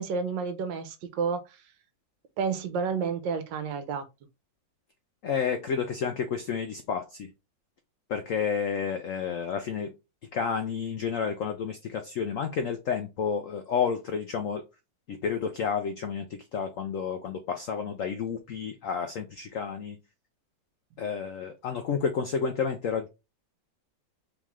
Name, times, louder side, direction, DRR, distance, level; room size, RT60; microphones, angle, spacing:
voice 1, 0.0-1.6 2.4-4.0, right 5 dB, 75° right, 1.4 m, -30 dB
voice 2, 5.2-7.3 8.1-9.9 10.3-14.6 15.1-20.0 21.0-23.1, left 6 dB, 80° left, 0.7 m, -30 dB
3.7 x 3.1 x 3.6 m
omnidirectional pair, 2.0 m